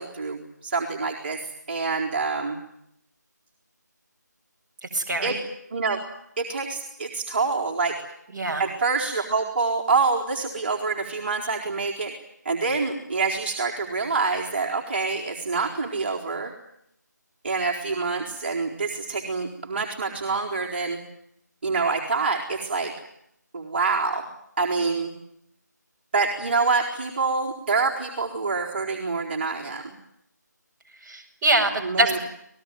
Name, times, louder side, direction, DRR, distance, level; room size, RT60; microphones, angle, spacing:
voice 1, 0.0-2.6 5.2-5.4 5.7-6.0 6.4-8.0 8.6-12.1 12.4-16.5 17.4-21.0 21.6-22.9 23.5-24.3 24.6-25.1 26.1-29.9 31.8-32.2, right 4 dB, 35° right, -1 dB, 4.3 m, -26 dB
voice 2, 4.8-5.4 8.3-8.6 31.0-32.2, right 2 dB, 10° right, -6 dB, 6.2 m, -24 dB
29.5 x 20.5 x 9.3 m, 0.75 s
figure-of-eight pair, 160°, 10 cm